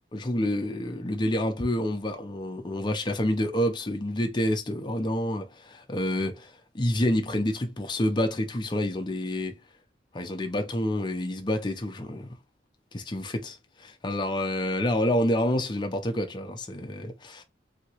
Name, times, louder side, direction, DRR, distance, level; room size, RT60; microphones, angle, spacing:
voice 1, 0.1-9.5 10.1-12.3 12.9-17.4, left 1 dB, 25° left, 0.5 m, -28 dB
2.8 x 2.7 x 2.9 m
head